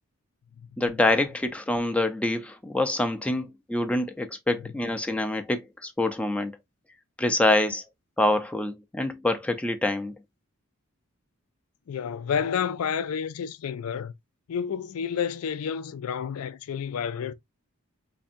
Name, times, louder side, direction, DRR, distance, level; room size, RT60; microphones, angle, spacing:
voice 1, 0.8-6.6 7.2-7.8 8.2-10.1, left 1 dB, 5° left, 0.4 m, -26 dB
voice 2, 11.9-14.1 14.5-17.3, left 7 dB, 85° left, 0.4 m, -30 dB
4.3 x 2.7 x 2.4 m
head